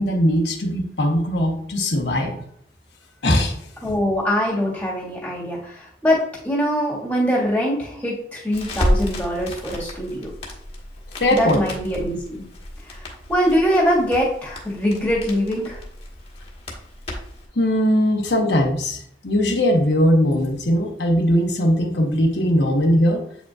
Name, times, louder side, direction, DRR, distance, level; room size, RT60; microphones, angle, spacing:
voice 1, 0.0-2.4 3.2-3.5 11.1-11.6 17.6-23.2, equal, 70° left, 0 dB, 1.0 m, -20 dB
voice 2, 3.8-10.3 11.3-12.5 12.8-15.8, equal, 10° left, -5 dB, 1.7 m, -23 dB
Crackle, 8.5-17.4, left 1 dB, 30° left, 1.3 m, -31 dB
7.9 x 5.1 x 2.4 m, 0.66 s
head